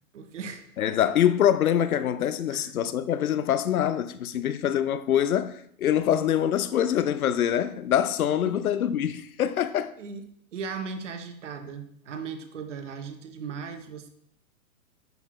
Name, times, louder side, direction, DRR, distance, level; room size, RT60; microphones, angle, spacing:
voice 1, 0.1-0.8 2.5-2.7 8.4-8.6 10.0-10.3 10.5-14.1, right 5 dB, 55° right, 0.9 m, -37 dB
voice 2, 0.8-9.9, left 10 dB, 70° left, 0.6 m, -24 dB
10.5 x 4.0 x 3.0 m
hypercardioid pair, 175°, 45 cm